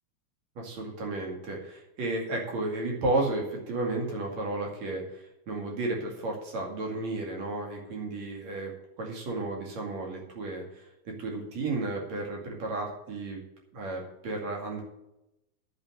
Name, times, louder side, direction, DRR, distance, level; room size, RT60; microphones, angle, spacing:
voice 1, 0.6-8.7 9.0-13.4 13.7-14.8, right 2 dB, 55° right, 0 dB, 3.4 m, -33 dB
10.0 x 6.9 x 8.1 m, 0.89 s
omnidirectional pair, 4.0 m